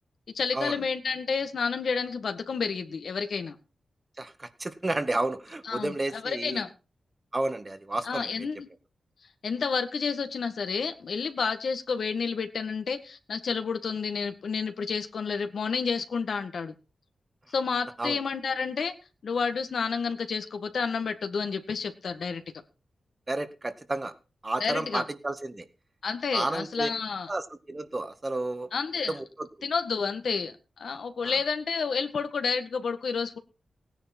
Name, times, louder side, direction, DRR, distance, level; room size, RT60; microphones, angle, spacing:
voice 1, 0.3-3.6 5.6-6.7 8.0-8.7 9.4-16.7 17.5-18.9 19.2-22.4 24.6-25.0 26.0-27.3 28.7-29.1 29.6-33.4, left 5 dB, 70° left, 7 dB, 1.8 m, -30 dB
voice 2, 4.2-6.6 7.3-8.5 18.0-18.2 23.3-24.1 24.4-25.7 26.3-26.9 27.3-28.7 29.1-29.5 31.2-31.4, right 2 dB, 25° right, 8 dB, 1.7 m, -31 dB
17.5 x 10.0 x 4.5 m, 0.32 s
wide cardioid pair, 95°, 0 cm